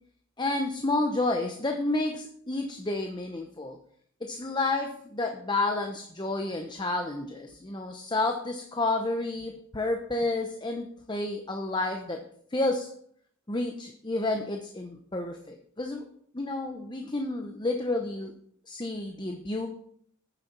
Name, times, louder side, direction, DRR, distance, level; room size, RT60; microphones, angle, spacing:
voice 1, 0.4-3.8 4.2-12.2 12.5-12.9 13.5-16.1 16.3-18.3 18.7-19.7, left 2 dB, 20° left, 3 dB, 0.8 m, -30 dB
9.2 x 7.0 x 5.9 m, 0.63 s
head